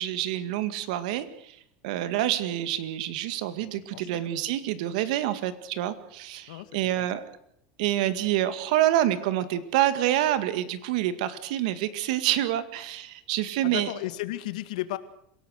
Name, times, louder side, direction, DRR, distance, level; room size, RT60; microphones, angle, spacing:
voice 1, 0.0-1.6 1.8-7.2 7.8-13.9, right 13 dB, 70° right, 12 dB, 2.0 m, -27 dB
voice 2, 3.9-4.3 6.5-6.7 7.0-7.1 13.6-15.0, left 16 dB, 85° left, 12 dB, 1.8 m, -34 dB
26.5 x 17.5 x 6.6 m, 0.70 s
supercardioid pair, 160°, 4 cm